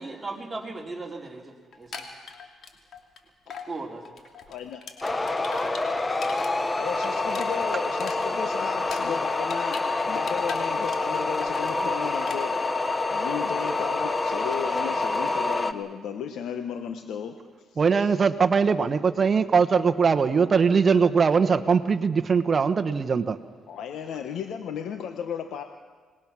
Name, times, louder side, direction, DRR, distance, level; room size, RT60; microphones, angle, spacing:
voice 1, 0.0-2.0 3.7-4.1, right 3 dB, 15° right, -1 dB, 4.4 m, -37 dB
sound 1, 1.7-3.2 3.5-3.7 4.0-6.5 6.8-9.9 10.1-11.2 11.4-11.8 12.2-12.4, left 6 dB, 60° left, 2.8 m, -40 dB
voice 2, 4.5-4.8 6.7-12.6 13.1-17.3 17.7-18.2 23.7-25.6, left 8 dB, 75° left, 6 dB, 1.2 m, -35 dB
sound 2, 5.0-15.7, left 3 dB, 20° left, 1.2 m, -27 dB
voice 3, 17.8-23.4, right 5 dB, 40° right, 9 dB, 1.1 m, -21 dB
26.5 x 20.5 x 6.2 m, 1.5 s
cardioid pair, 90°, 0 cm